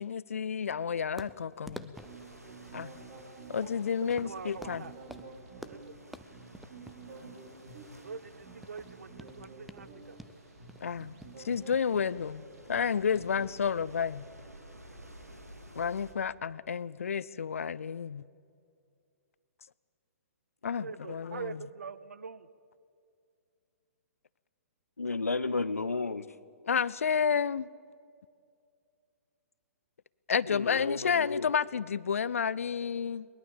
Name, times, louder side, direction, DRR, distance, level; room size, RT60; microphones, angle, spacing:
voice 1, 0.0-1.9 2.7-2.9 3.5-4.8 10.8-11.2 11.4-12.4 12.7-14.2 15.8-18.2 20.6-21.6 26.7-27.7 30.3-33.3, left 7 dB, 65° left, 21 dB, 0.5 m, -31 dB
sound 1, 1.2-11.8, equal, ahead, 0.7 m, -50 dB
sound 2, 1.8-13.5, right 4 dB, 40° right, 4.0 m, -51 dB
sound 3, 1.9-16.1, right 1 dB, 85° right, 2.6 m, -53 dB
voice 2, 4.0-4.9 5.7-6.0 8.0-10.2 20.8-22.5, right 5 dB, 65° right, 17 dB, 0.9 m, -44 dB
voice 3, 25.0-26.3 30.5-31.5, left 3 dB, 80° left, 17 dB, 0.9 m, -32 dB
21.5 x 21.0 x 7.3 m, 2.3 s
figure-of-eight pair, 120°, 8 cm